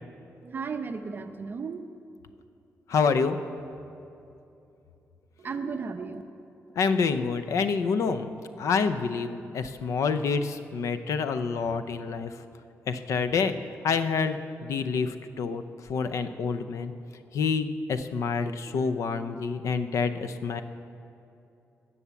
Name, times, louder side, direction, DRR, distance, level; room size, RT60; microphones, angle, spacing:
voice 1, 0.4-1.8 5.4-6.2, right 5 dB, 40° right, 7 dB, 0.7 m, -34 dB
voice 2, 2.9-3.4 6.8-8.3 8.6-12.3 12.9-13.5 13.8-15.6 15.9-16.9 17.3-20.6, left 5 dB, 75° left, 11 dB, 0.6 m, -27 dB
19.5 x 7.1 x 7.1 m, 2.7 s
wide cardioid pair, 160°, 5 cm